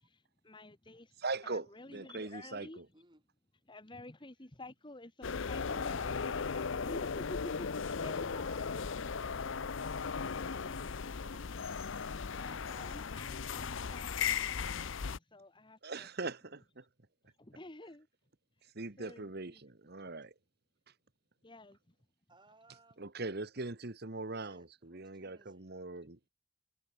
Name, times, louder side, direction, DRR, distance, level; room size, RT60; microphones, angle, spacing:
voice 1, 0.0-1.1 1.4-2.8 3.7-9.6 12.4-16.1 17.4-18.1 19.0-19.6 21.4-21.8, left 1 dB, 20° left, 1.3 m, -51 dB
voice 2, 1.2-2.8 11.2-11.4 15.8-16.8 18.6-20.3 20.9-21.0 23.0-26.3, right 3 dB, 50° right, 1.3 m, -41 dB
voice 3, 2.9-3.3 22.3-23.1 24.3-25.7, right 2 dB, 20° right, 5.3 m, -64 dB
sound 1, 5.2-15.2, left 6 dB, 60° left, 0.6 m, -37 dB
head